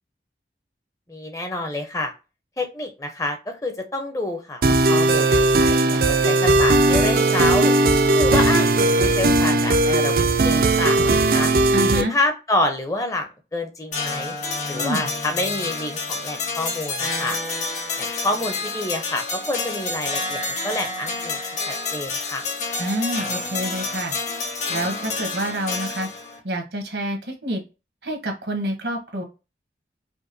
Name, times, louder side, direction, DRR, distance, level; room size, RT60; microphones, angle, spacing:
voice 1, 1.1-2.1 2.6-7.7 8.1-11.5 11.9-14.4 14.7-17.4 18.0-22.4, left 2 dB, 20° left, 5 dB, 0.6 m, -28 dB
sound 1, 4.6-12.0, right 2 dB, 55° right, 0.4 m, -18 dB
voice 2, 11.7-12.1 14.7-15.1 22.8-24.1 24.7-26.1 26.4-27.6 28.0-29.2, right 1 dB, 75° right, 3 dB, 1.2 m, -27 dB
sound 2, 13.9-26.4, left 3 dB, 40° left, 0.9 m, -29 dB
5.1 x 2.3 x 2.6 m, 0.29 s
head